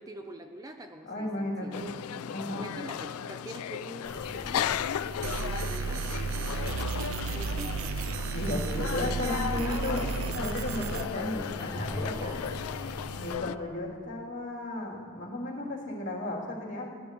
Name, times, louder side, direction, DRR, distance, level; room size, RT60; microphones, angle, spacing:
voice 1, 0.0-1.9 2.6-8.0 8.6-8.9 9.3-9.9 10.8-11.9 12.1-12.4, right 1 dB, 15° right, 5 dB, 0.6 m, -45 dB
voice 2, 1.0-2.6 8.3-12.3 13.2-16.9, left 1 dB, 55° left, -5 dB, 3.1 m, -34 dB
sound 1, 1.7-13.6, left 9 dB, 90° left, 0.3 m, -36 dB
sound 2, 4.0-13.4, left 1 dB, 25° left, 1.8 m, -41 dB
sound 3, 5.2-11.1, right 6 dB, 70° right, 0.3 m, -33 dB
21.0 x 15.5 x 3.1 m, 2.1 s
head